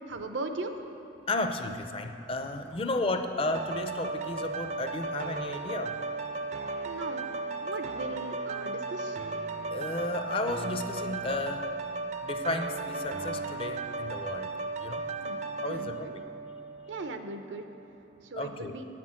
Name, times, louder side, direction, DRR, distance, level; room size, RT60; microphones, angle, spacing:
voice 1, 0.1-0.7 6.8-7.3 7.6-9.2 15.2-16.1 16.9-17.6 18.2-18.8, right 3 dB, 90° right, 7 dB, 0.7 m, -38 dB
voice 2, 1.2-6.0 9.7-11.7 12.2-14.5 14.8-15.0 15.6-16.2 18.3-18.8, left 2 dB, 30° left, 7 dB, 0.4 m, -33 dB
sound 1, 3.5-17.2 17.7-17.8, right 3 dB, 40° right, 0.4 m, -35 dB
8.7 x 6.0 x 7.4 m, 3.0 s
head